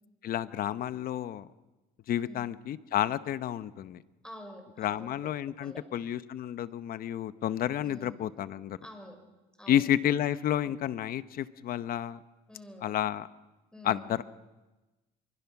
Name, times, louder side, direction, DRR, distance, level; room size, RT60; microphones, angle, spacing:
voice 1, 0.2-1.5 2.1-4.0 4.8-8.8 9.7-12.2 12.8-13.3 13.8-14.2, left 11 dB, 60° left, 14 dB, 0.9 m, -30 dB
voice 2, 4.2-5.1 5.6-5.8 7.8-8.2 8.8-9.2 9.6-9.8 12.5-12.9 13.7-14.1, left 1 dB, 5° left, 4 dB, 5.6 m, -47 dB
25.5 x 23.5 x 6.0 m, 1.1 s
cardioid pair, 110°, 17 cm